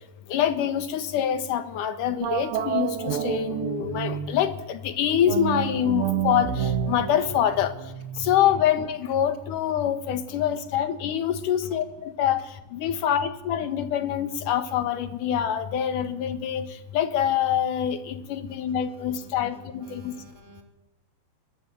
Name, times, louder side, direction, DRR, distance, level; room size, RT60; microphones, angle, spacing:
voice 1, 0.3-7.7 8.2-12.4 12.7-16.7 16.9-20.1, left 10 dB, 70° left, 9 dB, 2.9 m, -25 dB
sound 1, 2.2-4.5 5.2-8.6, right 9 dB, 90° right, 3.2 m, -29 dB
voice 2, 8.2-8.5 18.5-20.6, right 1 dB, 35° right, 2 dB, 4.3 m, -52 dB
22.0 x 19.0 x 9.1 m, 0.93 s
omnidirectional pair, 3.9 m